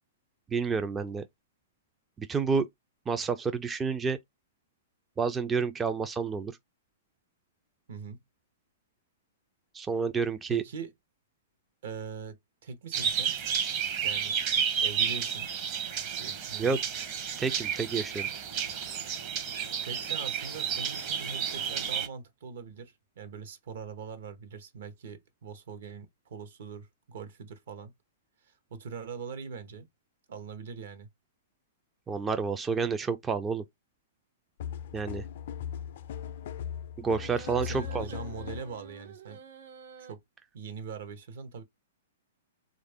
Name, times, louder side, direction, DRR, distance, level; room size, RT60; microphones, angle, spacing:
voice 1, 0.5-1.2 2.2-2.7 3.1-4.2 5.2-6.6 9.7-10.6 16.6-16.8 17.4-18.3 32.1-33.6 34.9-35.2 37.0-38.1, right 5 dB, 15° right, 0.3 m, -29 dB
voice 2, 7.9-8.2 10.5-10.9 11.8-13.3 14.0-14.4 14.8-15.5 16.2-16.8 19.8-27.9 28.4-29.9 30.3-31.1 37.5-39.4 40.0-40.2 40.5-41.6, right 5 dB, 70° right, 0.9 m, -42 dB
sound 1, 12.9-22.1, right 7 dB, 40° right, 0.8 m, -31 dB
sound 2, 34.6-38.8, left 9 dB, 60° left, 0.4 m, -39 dB
sound 3, 37.1-40.1, right 6 dB, 85° right, 1.3 m, -48 dB
3.4 x 2.5 x 3.4 m
hypercardioid pair, 135°, 0 cm